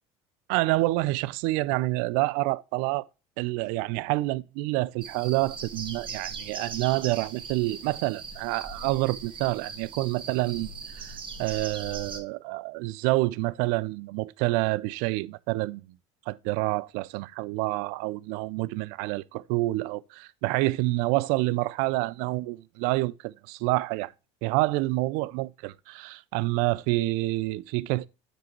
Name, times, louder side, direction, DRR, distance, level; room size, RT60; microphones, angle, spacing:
voice 1, 0.5-3.1 3.4-15.9 16.3-24.1 24.4-28.1, right 20 dB, 75° right, 0.5 m, -28 dB
sound 1, 5.0-12.2, right 5 dB, 35° right, 1.5 m, -40 dB
8.8 x 5.3 x 3.0 m
supercardioid pair, 95°, 15 cm